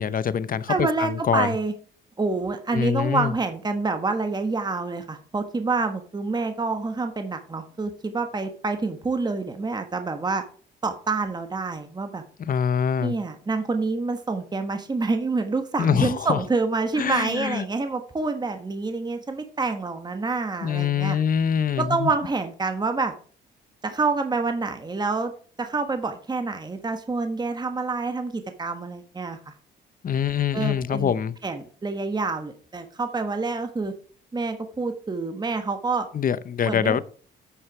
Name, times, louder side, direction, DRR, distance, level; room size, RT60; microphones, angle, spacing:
voice 1, 0.0-1.5 2.7-3.3 12.5-13.1 15.8-16.4 17.0-17.6 20.6-22.1 30.0-31.3 36.1-37.0, left 8 dB, 45° left, 0.8 m, -24 dB
voice 2, 0.7-1.7 2.2-10.4 10.8-12.2 13.0-21.2 21.8-23.1 23.8-25.3 25.6-29.5 30.5-31.1 31.4-33.9 34.3-36.1 36.7-37.0, right 3 dB, 20° right, 1.2 m, -27 dB
9.5 x 6.2 x 4.8 m
cardioid pair, 90°, 20 cm